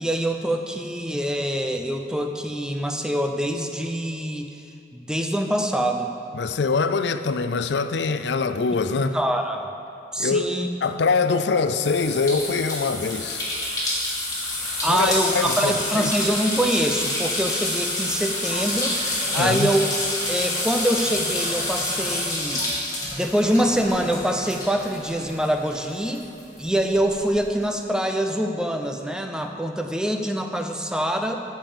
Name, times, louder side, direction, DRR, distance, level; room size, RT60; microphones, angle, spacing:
voice 1, 0.0-4.5 4.9-6.1 9.0-9.7 10.1-10.7 14.8-19.0 19.3-19.8 20.3-22.6 23.1-26.3 26.6-31.4, equal, 5° right, 0.5 m, -24 dB
voice 2, 6.3-9.2 10.2-10.5 10.8-13.4 14.9-16.1 19.3-19.7, left 4 dB, 70° left, 0.4 m, -24 dB
sound 1, 11.8-25.8 26.1-27.4, left 1 dB, 20° left, 2.5 m, -28 dB
14.0 x 5.3 x 7.3 m
head